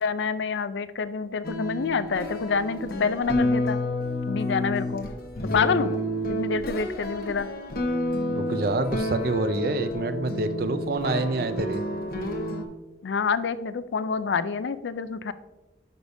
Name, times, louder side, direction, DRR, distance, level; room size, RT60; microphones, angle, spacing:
voice 1, 0.0-3.8 4.3-5.1 5.5-6.0 6.3-7.5 13.0-15.3, left 5 dB, 80° left, 14 dB, 0.4 m, -27 dB
sound 1, 1.4-12.6, left 1 dB, 55° left, 0.9 m, -29 dB
voice 2, 8.3-11.8, right 2 dB, 55° right, 11 dB, 0.5 m, -27 dB
11.0 x 4.9 x 2.6 m, 1.1 s
head